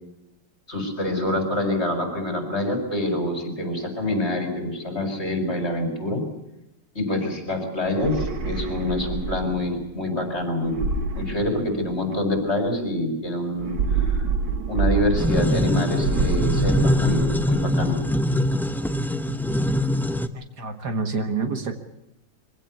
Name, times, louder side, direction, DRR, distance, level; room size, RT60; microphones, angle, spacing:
voice 1, 0.7-6.3 6.9-10.8 11.1-13.8 14.1-14.3 14.7-18.0, left 1 dB, 35° left, 5 dB, 5.0 m, -26 dB
sound 1, 7.8-9.8 10.6-12.1 13.5-15.7 16.0-17.7, right 4 dB, 90° right, 2.3 m, -27 dB
sound 2, 15.2-20.3, left 1 dB, ahead, 0.4 m, -23 dB
voice 2, 20.3-21.8, right 4 dB, 65° right, 6 dB, 2.3 m, -28 dB
24.0 x 17.0 x 8.3 m, 0.91 s
omnidirectional pair, 1.9 m